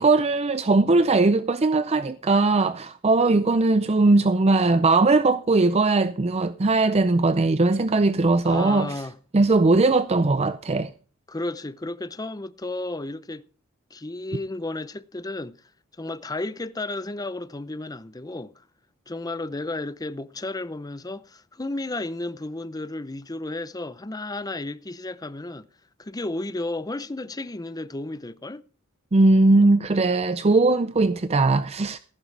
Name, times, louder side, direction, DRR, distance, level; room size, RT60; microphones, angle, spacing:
voice 1, 0.0-8.9 9.3-10.9 29.1-32.0, right 3 dB, 30° right, 0.5 m, -19 dB
voice 2, 8.4-9.2 11.3-13.4 13.9-15.6 16.0-18.6 19.1-25.7 26.0-28.6, left 2 dB, 15° left, 0.6 m, -33 dB
15.0 x 12.0 x 3.3 m
head